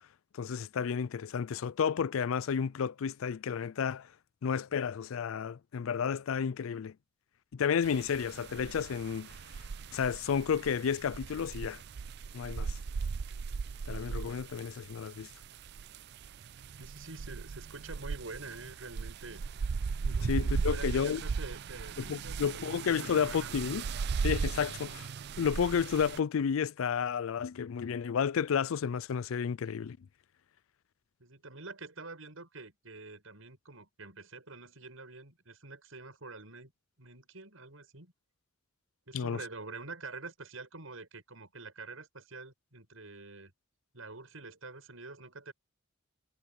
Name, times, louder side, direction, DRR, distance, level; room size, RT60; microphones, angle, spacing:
voice 1, 0.3-4.1 4.4-6.9 7.5-9.3 9.9-11.8 12.3-12.8 13.9-15.3 20.3-21.2 22.0-23.8 24.2-25.1 25.4-30.0 39.1-39.4, left 7 dB, 85° left, 0.4 m, -31 dB
sound 1, 7.8-26.2, right 5 dB, 55° right, 0.4 m, -37 dB
voice 2, 16.8-19.4 20.0-20.3 20.7-23.5 24.9-25.0 31.2-36.7 37.0-38.1 39.1-43.5 43.9-45.5, right 3 dB, 90° right, 6.8 m, -46 dB
head